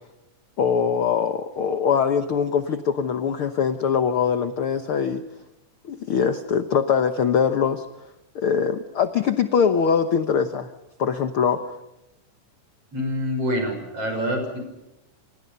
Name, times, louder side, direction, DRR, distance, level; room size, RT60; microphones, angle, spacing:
voice 1, 0.6-5.2 5.9-7.8 8.3-10.7 11.0-11.6, left 7 dB, 60° left, 9 dB, 1.5 m, -22 dB
voice 2, 12.9-14.6, equal, 45° right, 5 dB, 7.2 m, -26 dB
28.0 x 28.0 x 5.5 m, 0.92 s
omnidirectional pair, 3.7 m